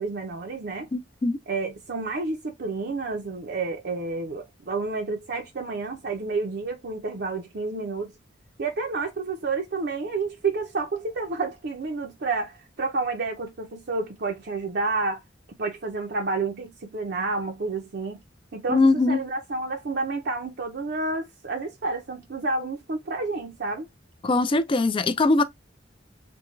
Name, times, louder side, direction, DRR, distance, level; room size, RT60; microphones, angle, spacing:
voice 1, 0.0-0.9 1.5-8.1 8.6-15.2 15.6-18.2 18.5-18.8 19.1-23.9, right 3 dB, 60° right, 0.6 m, -30 dB
voice 2, 0.9-1.4 18.7-19.2 24.2-25.4, left 3 dB, 25° left, 0.3 m, -21 dB
3.5 x 2.2 x 3.1 m
head